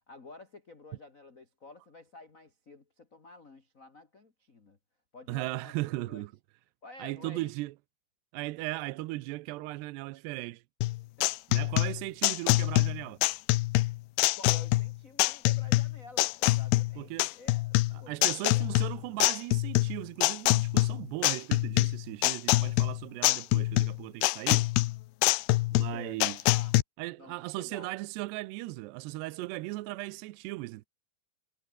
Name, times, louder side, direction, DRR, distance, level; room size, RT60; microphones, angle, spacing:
voice 1, 0.1-4.8 5.1-6.3 6.8-7.5 11.2-11.4 14.3-19.1 25.9-26.2 26.5-26.8 27.2-27.9, left 3 dB, 30° left, 1.5 m, -51 dB
voice 2, 5.3-6.3 7.0-7.7 8.3-10.6 11.5-13.2 17.0-17.3 17.9-24.7 25.7-26.4 27.0-30.9, right 19 dB, 90° right, 2.8 m, -37 dB
sound 1, 10.8-26.8, left 20 dB, 80° left, 2.6 m, -25 dB
omnidirectional pair, 4.9 m